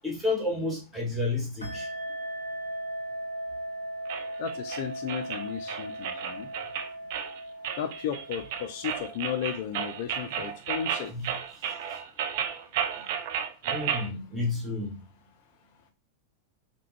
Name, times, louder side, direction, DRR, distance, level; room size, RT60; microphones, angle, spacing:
voice 1, 0.0-1.9 11.1-11.3 13.6-15.0, left 2 dB, 5° right, -2 dB, 1.2 m, -30 dB
sound 1, 1.6-9.7, right 1 dB, 90° right, 0.7 m, -38 dB
sound 2, 4.1-14.1, right 8 dB, 50° right, 0.4 m, -33 dB
voice 2, 4.4-6.5 7.8-11.1, left 8 dB, 50° left, 8 dB, 0.3 m, -34 dB
3.5 x 2.2 x 3.1 m, 0.29 s
figure-of-eight pair, 90°, 0 cm